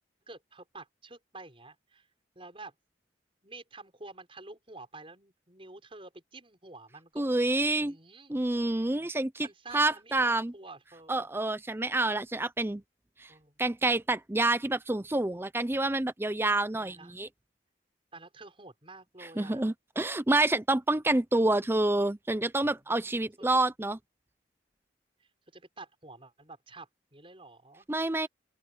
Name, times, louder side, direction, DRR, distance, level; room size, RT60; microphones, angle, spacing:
voice 1, 0.3-2.1 2.3-2.7 3.4-7.3 7.6-8.4 9.4-11.3 13.3-13.6 16.8-17.2 18.1-19.6 23.0-23.1 23.4-23.5 25.2-27.9 28.1-28.3, right 3 dB, 30° right, 6.3 m, -49 dB
voice 2, 7.2-7.9 8.3-9.5 9.7-10.5 11.1-12.8 13.2-13.3 13.6-17.3 19.4-24.0 27.9-28.3, right 2 dB, 15° right, 0.5 m, -28 dB
open air
head